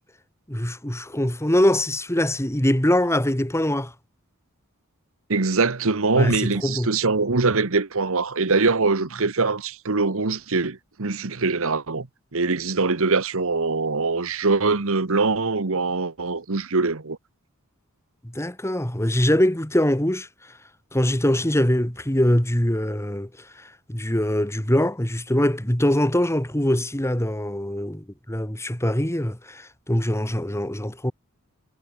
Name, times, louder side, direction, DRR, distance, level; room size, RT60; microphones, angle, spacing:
voice 1, 0.5-3.9 6.1-6.9 18.2-20.3 20.9-23.3 23.6-31.1, left 1 dB, 10° left, 2.3 m, -23 dB
voice 2, 5.3-12.1 12.3-17.2, right 3 dB, 70° right, 1.2 m, -23 dB
head